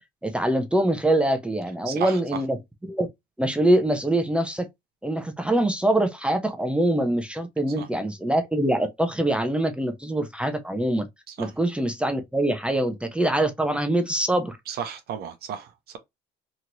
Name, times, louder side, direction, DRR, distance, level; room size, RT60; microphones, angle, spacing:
voice 1, 0.2-2.6 2.8-3.1 3.4-4.7 5.0-11.1 11.4-14.6, right 1 dB, 5° right, 0.5 m, -24 dB
voice 2, 1.9-2.2 7.8-7.9 11.4-11.5 14.7-16.0, right 8 dB, 60° right, 0.6 m, -33 dB
2.9 x 2.8 x 2.5 m
cardioid pair, 100°, 18 cm